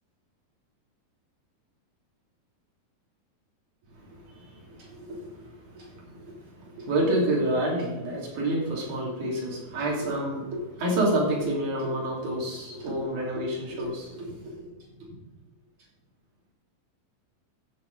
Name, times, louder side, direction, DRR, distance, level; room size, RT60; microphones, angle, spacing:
voice 1, 4.0-14.7, right 1 dB, 60° right, -3 dB, 4.4 m, -29 dB
15.0 x 7.4 x 4.0 m, 1.2 s
omnidirectional pair, 4.1 m